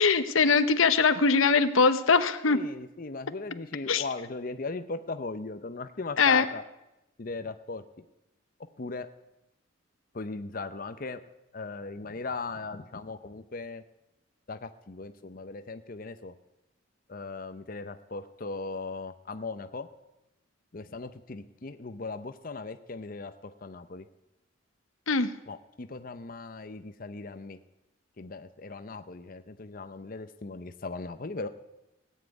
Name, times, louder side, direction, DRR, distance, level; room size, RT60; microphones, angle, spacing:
voice 1, 0.0-2.7 3.9-4.0 6.2-6.5 25.1-25.3, left 5 dB, 85° left, 11 dB, 0.9 m, -22 dB
voice 2, 2.4-6.6 7.2-7.8 8.8-9.1 10.1-11.2 11.5-13.8 14.5-16.3 17.1-19.9 20.7-23.3 23.6-24.0 25.5-27.6 28.2-31.5, left 3 dB, 45° left, 9 dB, 0.7 m, -38 dB
17.5 x 7.5 x 9.4 m, 0.93 s
head